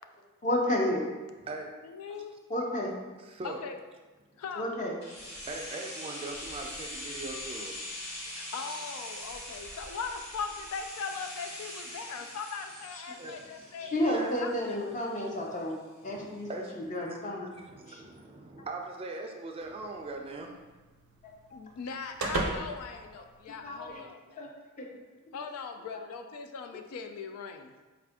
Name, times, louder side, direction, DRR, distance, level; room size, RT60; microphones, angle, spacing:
voice 1, 0.4-1.0 2.5-2.9 4.6-4.9 12.9-13.0 13.8-15.8 16.0-17.5 17.9-18.0 23.6-24.0 24.4-24.5 24.8-24.9, left 1 dB, 35° left, -1 dB, 0.6 m, -31 dB
voice 2, 1.8-2.3 3.4-3.8 4.4-4.7 8.3-14.1 14.4-14.8 21.5-24.5 25.3-27.7, left 5 dB, 85° left, 6 dB, 0.3 m, -40 dB
voice 3, 3.2-3.6 5.4-7.8 13.2-14.4 16.0-20.5, right 2 dB, 25° right, 2 dB, 0.3 m, -41 dB
sound 1, 5.0-14.8 15.1-15.2, left 1 dB, 50° left, 1.3 m, -42 dB
sound 2, 19.6-24.0, right 2 dB, 85° right, 0.5 m, -39 dB
4.3 x 2.4 x 3.4 m, 1.2 s
head